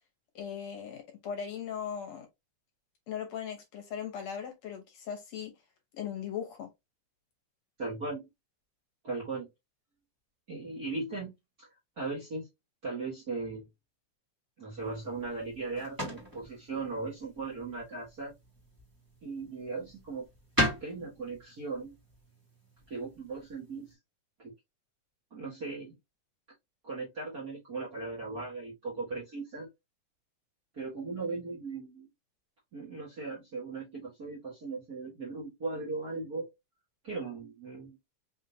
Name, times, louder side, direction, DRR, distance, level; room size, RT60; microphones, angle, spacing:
voice 1, 0.4-2.3 3.1-5.5 5.9-6.7, left 8 dB, 65° left, 2.0 m, -38 dB
voice 2, 7.8-8.3 9.0-9.5 10.5-11.3 11.6-11.7 12.0-12.4 12.8-13.7 14.6-18.3 19.2-20.3 20.8-21.9 22.9-23.9 24.4-24.5 25.3-25.9 26.8-29.7 30.7-32.1 32.7-36.5 37.0-38.0, right 3 dB, 40° right, 1.5 m, -38 dB
sound 1, 14.8-23.9, equal, 10° right, 1.0 m, -39 dB
5.3 x 2.7 x 2.7 m
omnidirectional pair, 3.5 m